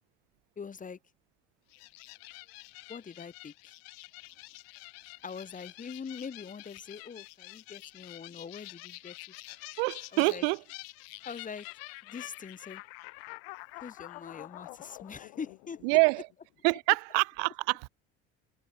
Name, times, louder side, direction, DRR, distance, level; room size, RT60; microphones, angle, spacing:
voice 1, 0.6-1.0 2.9-3.7 5.2-9.1 10.1-10.4 11.2-11.7 12.0-12.8 13.8-15.8, left 6 dB, 25° left, 4.6 m, -43 dB
sound 1, 1.7-16.3, left 29 dB, 90° left, 1.4 m, -48 dB
voice 2, 9.8-10.6 15.8-16.3 16.6-17.9, right 40 dB or more, 85° right, 1.2 m, -26 dB
supercardioid pair, 110°, 29 cm